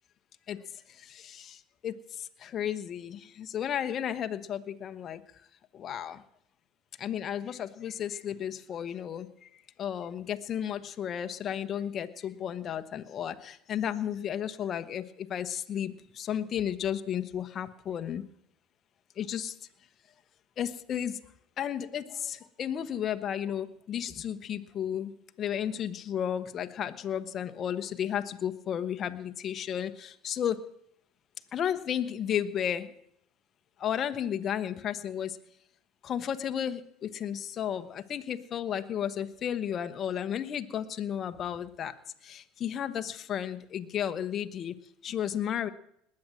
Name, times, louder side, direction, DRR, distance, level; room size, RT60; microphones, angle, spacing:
voice 1, 0.5-0.8 1.8-5.2 5.7-6.2 7.0-9.5 9.8-18.2 19.2-19.5 20.6-21.2 21.6-30.6 31.5-32.9 33.8-35.4 36.0-41.9 42.2-44.7 45.0-45.7, left 9 dB, 40° left, 9 dB, 1.1 m, -33 dB
20.0 x 8.7 x 7.6 m, 0.72 s
supercardioid pair, 115°, 0 cm